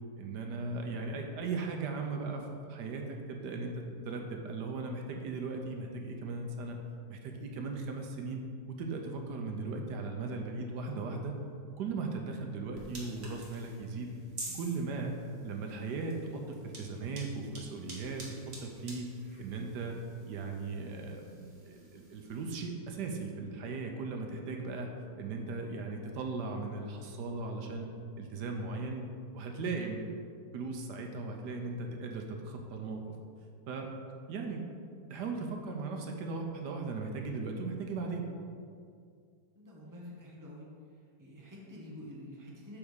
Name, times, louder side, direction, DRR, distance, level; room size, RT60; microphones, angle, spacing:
voice 1, 0.2-6.8 7.1-8.4 8.7-11.4 11.8-14.1 14.5-15.2 15.4-18.2 18.6-19.1 19.4-20.0 20.2-24.9 25.2-27.9 28.2-29.1 29.3-30.0 30.5-33.1 33.7-33.9 34.3-34.6 35.1-38.3, right 3 dB, 80° right, 3 dB, 1.4 m, -37 dB
sound 1, 12.7-22.5, right 2 dB, 40° right, 1.6 m, -50 dB
voice 2, 39.6-40.7 41.2-42.8, left 1 dB, 15° right, -4 dB, 1.1 m, -48 dB
8.3 x 3.6 x 6.5 m, 2.2 s
omnidirectional pair, 1.8 m